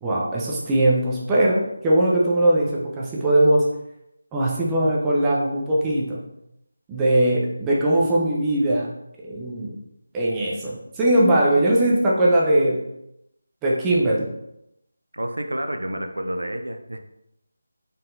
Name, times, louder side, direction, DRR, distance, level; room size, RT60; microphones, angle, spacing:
voice 1, 0.0-3.7 4.3-6.2 6.9-8.9 9.2-9.8 10.1-12.8 13.6-14.3, right 1 dB, 10° right, -5 dB, 0.6 m, -20 dB
voice 2, 15.1-17.0, right 1 dB, 70° right, 6 dB, 0.4 m, -29 dB
4.0 x 3.7 x 2.6 m, 0.83 s
figure-of-eight pair, 160°, 0 cm